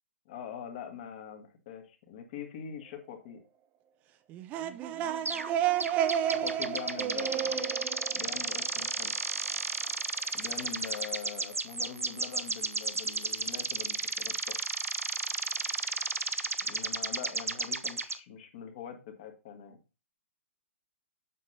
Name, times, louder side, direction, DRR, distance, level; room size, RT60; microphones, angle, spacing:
voice 1, 0.3-3.4 6.3-7.7 8.2-9.1 10.3-14.6 16.6-19.8, left 8 dB, 40° left, 5 dB, 1.7 m, -43 dB
sound 1, 4.3-9.0, right 10 dB, 20° right, 0.4 m, -31 dB
sound 2, 5.3-5.5 5.8-18.2, right 3 dB, 80° right, 0.5 m, -33 dB
7.7 x 6.4 x 2.7 m, 0.31 s
figure-of-eight pair, 120°, 7 cm